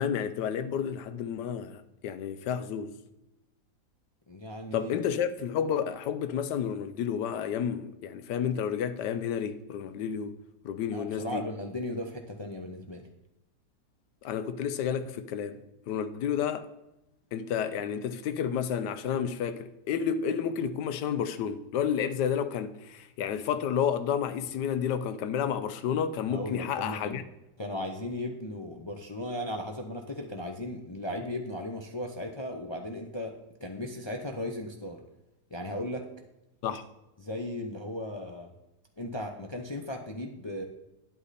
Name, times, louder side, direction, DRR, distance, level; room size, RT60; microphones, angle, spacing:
voice 1, 0.0-3.0 4.7-10.4 10.6-11.4 14.2-16.7 17.3-27.2 36.6-36.8, left 8 dB, 85° left, 1.3 m, -31 dB
voice 2, 4.3-4.9 10.9-13.0 26.3-27.2 27.6-33.3 33.6-35.0 35.5-36.1 37.2-38.5 39.0-40.6, left 1 dB, 40° left, 0.3 m, -36 dB
9.7 x 8.2 x 4.1 m
omnidirectional pair, 1.8 m